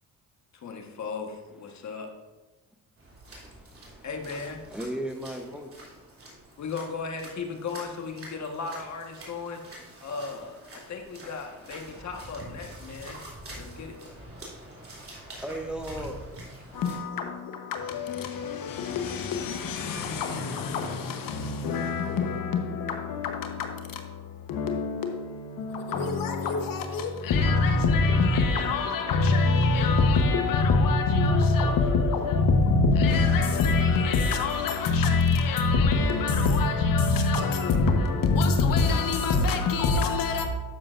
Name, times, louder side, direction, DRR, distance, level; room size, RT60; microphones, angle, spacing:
voice 1, 0.5-2.1 4.0-4.6 6.6-9.6 10.0-13.2 13.5-14.0, left 5 dB, 50° left, 1.4 m, -36 dB
sound 1, 3.0-17.0, right 1 dB, 40° right, 3.1 m, -46 dB
voice 2, 3.3-4.1 4.7-5.7 14.5-16.2, right 1 dB, 5° right, 0.9 m, -37 dB
voice 3, 16.7-40.5, left 3 dB, 65° left, 1.1 m, -24 dB
12.0 x 7.4 x 2.5 m
cardioid pair, 85°, 36 cm